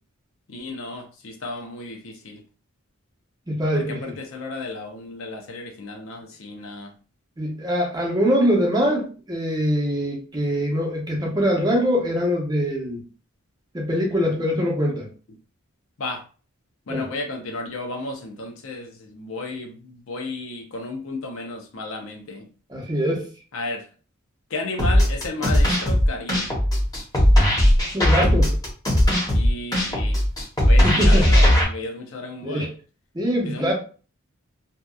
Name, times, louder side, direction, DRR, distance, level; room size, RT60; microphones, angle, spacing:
voice 1, 0.5-2.4 3.7-6.9 16.0-16.2 16.9-22.5 23.5-23.8 24.5-26.5 29.3-30.2 30.7-32.7 33.4-33.7, left 2 dB, 70° left, 0.6 m, -33 dB
voice 2, 3.5-4.1 7.4-13.0 13.7-15.1 16.9-17.1 22.7-23.2 27.9-28.5 30.8-31.3 32.4-32.7 33.1-33.7, equal, 20° right, 0.7 m, -23 dB
sound 1, 24.8-31.6, equal, 20° left, 0.9 m, -18 dB
2.8 x 2.3 x 2.3 m
head